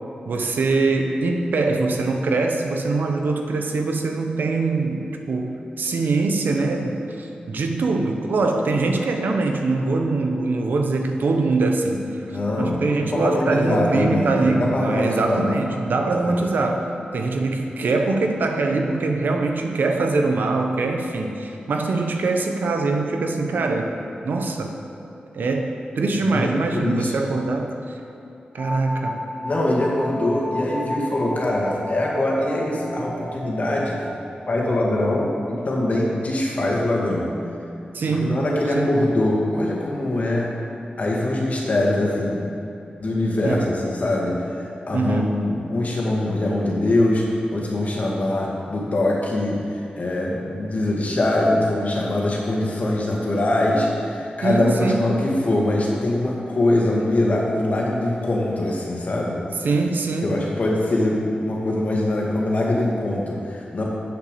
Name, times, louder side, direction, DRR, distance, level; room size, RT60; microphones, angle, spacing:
voice 1, 0.3-12.1 12.6-24.0 24.2-24.8 25.3-28.0 28.5-29.2 37.9-38.5 38.7-39.0 43.4-43.7 44.9-45.3 54.4-55.1 59.6-60.4, right 3 dB, 90° right, 3 dB, 1.0 m, -23 dB
voice 2, 12.2-15.5 16.1-16.4 26.2-27.1 29.4-34.0 34.5-37.3 38.1-40.5 41.0-42.5 43.0-59.4 60.2-63.8, left 1 dB, 50° left, -3 dB, 2.1 m, -23 dB
sound 1, 28.6-38.0, equal, 5° right, 2.6 m, -34 dB
8.3 x 7.0 x 6.8 m, 2.8 s
wide cardioid pair, 90°, 3 cm